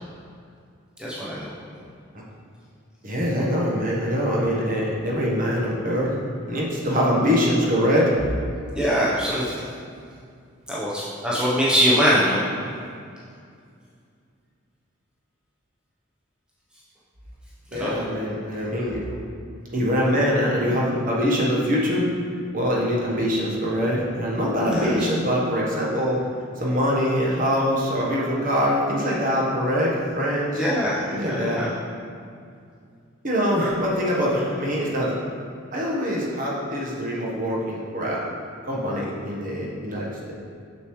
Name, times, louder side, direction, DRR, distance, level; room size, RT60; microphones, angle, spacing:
voice 1, 1.0-1.5 8.7-9.6 10.7-12.4 17.7-18.0 20.1-20.2 24.6-25.1 30.5-31.7, equal, 5° right, -8 dB, 0.7 m, -23 dB
voice 2, 3.0-6.2 6.5-8.1 17.7-19.0 19.7-22.1 22.5-26.2 26.6-30.6 31.1-31.6 33.2-35.1 35.7-38.2 38.7-40.3, equal, 40° right, -4 dB, 1.1 m, -23 dB
6.6 x 6.3 x 3.1 m, 2.3 s
head